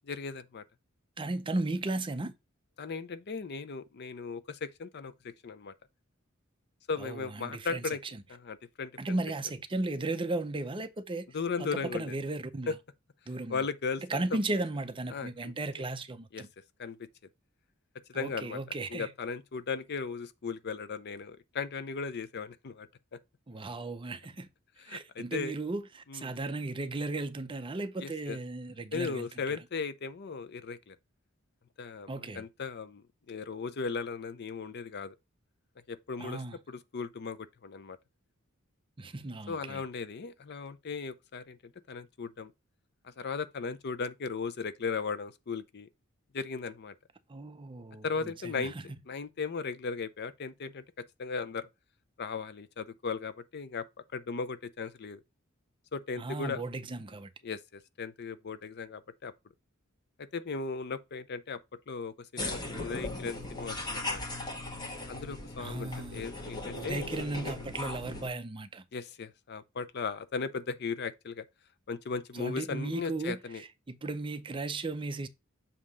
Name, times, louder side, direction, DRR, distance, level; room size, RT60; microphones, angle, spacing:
voice 1, 0.0-0.6 2.8-5.1 5.4-5.7 6.9-8.0 8.3-8.9 11.3-12.2 12.7-12.8 13.5-14.2 15.1-15.5 16.3-16.4 16.8-17.0 18.1-18.6 18.9-22.9 24.9-25.5 26.1-26.2 28.0-28.4 28.9-31.0 31.8-35.1 35.9-36.4 36.7-38.0 39.5-41.6 41.9-42.5 43.0-45.9 46.3-46.9 48.0-48.7 49.1-50.8 51.2-51.7 52.2-53.9 54.1-55.2 55.9-56.6 57.4-59.3 60.2-61.6 61.9-64.2 65.1-67.1 68.9-71.4 71.9-73.6, left 5 dB, 50° left, 0.5 m, -37 dB
voice 2, 1.2-2.3 7.0-8.2 9.0-11.3 11.6-12.8 13.3-13.7 14.1-16.5 18.1-19.1 23.5-24.5 24.9-29.6 32.1-32.4 36.2-36.6 39.0-39.8 47.3-48.8 56.2-57.3 65.6-66.2 66.8-68.8 72.3-75.3, right 2 dB, 25° right, 0.5 m, -36 dB
sound 1, 62.4-68.3, left 2 dB, 20° left, 1.3 m, -38 dB
7.5 x 2.8 x 4.7 m
head